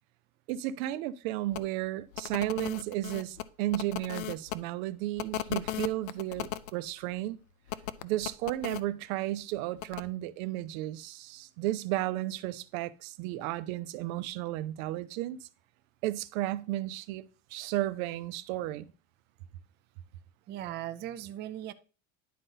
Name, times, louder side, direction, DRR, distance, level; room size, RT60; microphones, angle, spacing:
voice 1, 0.5-7.4 8.0-15.5 16.0-18.9, right 15 dB, 85° right, 0.6 m, -33 dB
sound 1, 1.5-1.6 2.1-4.6 5.2-6.7 7.7-8.8 9.8-10.0, left 14 dB, 50° left, 0.5 m, -36 dB
voice 2, 20.5-21.7, right 12 dB, 30° right, 0.4 m, -38 dB
10.5 x 4.0 x 3.9 m
cardioid pair, 145°, 39 cm